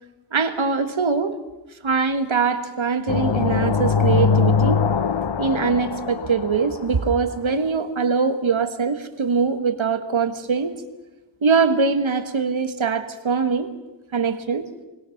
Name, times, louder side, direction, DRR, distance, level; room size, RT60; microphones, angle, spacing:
voice 1, 0.3-1.4 1.8-4.9 5.4-10.8 11.4-13.7 14.1-14.6, right 5 dB, 90° right, 9 dB, 1.7 m, -22 dB
sound 1, 3.1-6.9, left 6 dB, 65° left, 0.9 m, -21 dB
25.0 x 21.0 x 5.9 m, 1.1 s
wide cardioid pair, 75°, 46 cm